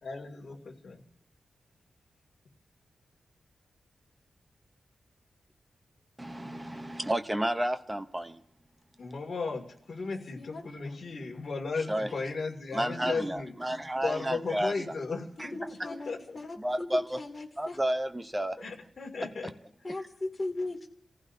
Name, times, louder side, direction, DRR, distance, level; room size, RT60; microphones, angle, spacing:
voice 1, 0.0-1.0 9.0-16.4 18.6-19.5, left 4 dB, 40° left, 2.5 m, -36 dB
voice 2, 6.2-8.4 11.9-12.1 12.7-14.7 15.4-15.5 16.6-17.2 17.6-18.6, right 1 dB, 10° right, 0.8 m, -31 dB
voice 3, 10.4-11.4 15.5-16.9 17.2-17.8 19.8-20.9, left 2 dB, 25° left, 2.5 m, -39 dB
28.5 x 15.0 x 2.8 m
wide cardioid pair, 170°, 0 cm